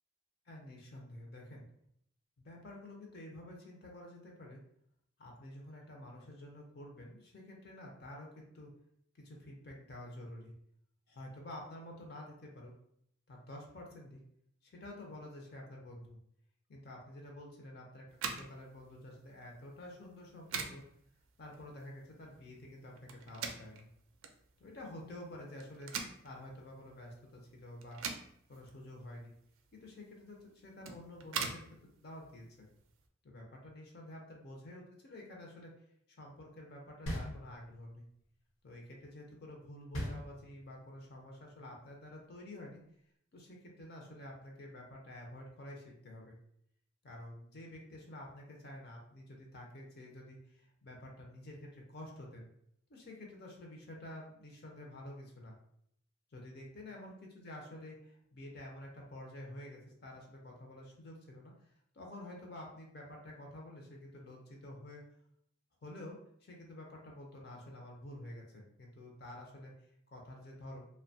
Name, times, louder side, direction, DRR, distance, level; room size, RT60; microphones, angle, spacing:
voice 1, 0.5-1.6 2.4-4.6 5.2-8.7 9.1-10.5 11.1-12.7 13.3-14.2 14.6-16.2 16.7-18.0 18.3-20.8 21.4-23.9 24.6-28.0 28.5-29.3 29.7-32.7 33.2-35.7 36.2-38.1 38.6-42.8 43.3-46.4 47.0-52.5 52.9-55.5 56.3-65.0 65.8-70.9, left 1 dB, 50° left, 0 dB, 0.5 m, -50 dB
sound 1, 18.1-33.1, right 5 dB, 75° right, 0.3 m, -45 dB
sound 2, 37.1-38.0 39.9-40.9, equal, 80° left, 0.7 m, -40 dB
2.7 x 2.1 x 2.6 m, 0.71 s
head